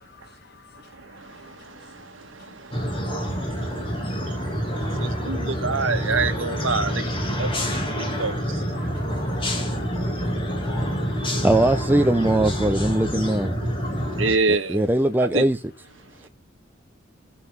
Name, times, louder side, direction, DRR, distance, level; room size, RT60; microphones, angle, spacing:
voice 1, 0.0-5.8 7.4-11.5 13.7-14.2 16.0-16.2, left 4 dB, 55° left, 1.1 m, -53 dB
sound 1, 2.7-14.4, equal, 30° left, 2.6 m, -27 dB
voice 2, 5.0-5.4 5.6-6.9 7.4-7.5 8.2-8.3 14.2-14.8 15.3-15.4, right 4 dB, 85° right, 1.7 m, -23 dB
voice 3, 11.4-13.5 14.7-15.6, right 1 dB, 10° right, 0.6 m, -20 dB
16.0 x 5.7 x 3.5 m
head